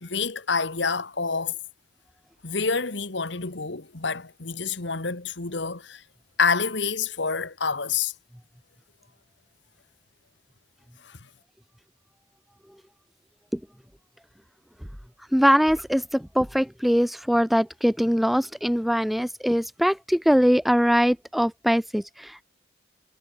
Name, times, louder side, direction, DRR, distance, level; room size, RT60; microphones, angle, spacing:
voice 1, 0.0-1.6 2.4-6.0 6.4-8.1 11.0-11.2, left 5 dB, 70° left, 1.7 m, -27 dB
voice 2, 15.3-22.4, equal, ahead, 0.4 m, -22 dB
head